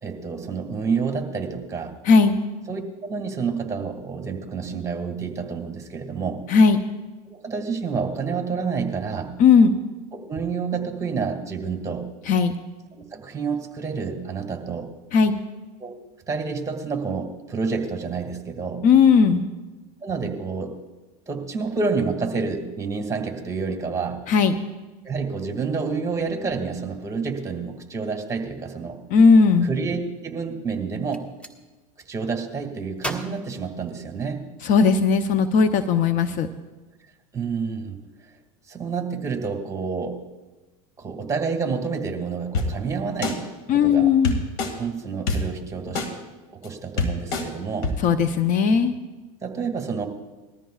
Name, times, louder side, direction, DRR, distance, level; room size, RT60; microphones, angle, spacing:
voice 1, 0.0-1.9 2.7-6.4 7.3-9.3 10.1-12.1 12.9-14.9 15.8-16.0 16.3-18.8 20.0-20.7 21.3-24.2 25.0-29.0 29.6-31.3 32.1-34.4 37.3-38.0 38.7-40.2 41.0-44.1 44.8-46.1 46.5-47.9 49.4-50.1, right 5 dB, 15° right, 4 dB, 2.2 m, -29 dB
voice 2, 2.0-2.4 6.5-6.8 9.4-9.7 12.3-12.5 15.1-15.4 18.8-19.5 24.3-24.6 29.1-29.7 34.6-36.5 43.7-44.4 48.0-49.0, left 5 dB, 45° left, 9 dB, 0.8 m, -17 dB
Gunshot gunfire, 31.1-31.6 33.0-34.5, right 1 dB, 5° left, 1.3 m, -36 dB
sound 1, 42.5-42.7 43.2-43.3 44.2-44.7 45.3-45.4 45.9-46.1 46.6-46.7 47.0-47.4 47.8-47.9, left 3 dB, 65° left, 2.3 m, -24 dB
20.0 x 14.0 x 2.4 m, 1.2 s
supercardioid pair, 115°, 19 cm